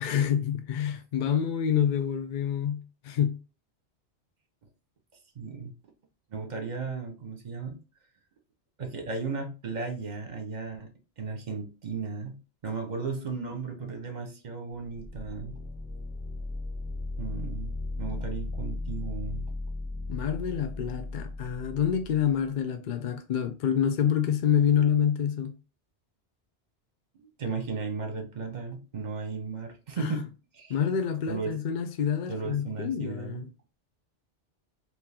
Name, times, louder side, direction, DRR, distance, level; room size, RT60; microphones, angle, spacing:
voice 1, 0.0-3.4 20.1-25.6 30.0-30.2 30.7-33.5, left 8 dB, 60° left, 0.5 m, -27 dB
voice 2, 5.3-5.7 6.3-7.8 8.8-10.9 11.2-12.4 12.6-15.5 17.2-17.7 18.0-19.4 27.1-30.2 30.5-30.7 31.3-31.6 32.3-33.4, right 4 dB, 45° right, 0.9 m, -35 dB
sound 1, 14.9-22.5, left 2 dB, 5° right, 0.5 m, -36 dB
3.6 x 2.9 x 2.8 m
omnidirectional pair, 1.1 m